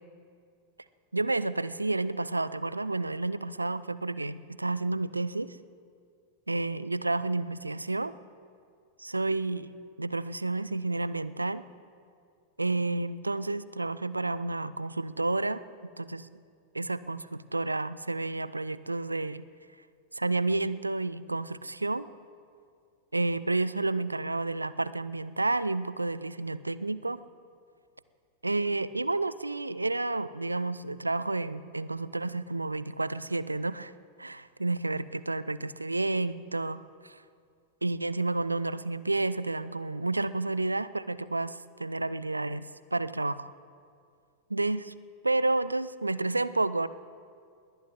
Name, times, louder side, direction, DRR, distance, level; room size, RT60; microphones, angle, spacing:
voice 1, 1.1-5.6 6.5-8.1 9.0-9.7 10.0-11.6 12.6-15.6 16.0-16.3 16.7-19.4 20.1-22.1 23.1-27.2 28.4-33.9 34.2-37.2 37.8-43.5 44.5-44.9 45.2-46.9, right 2 dB, 85° right, 17 dB, 0.4 m, -30 dB
20.5 x 18.5 x 3.7 m, 2.2 s
figure-of-eight pair, 90°, 0 cm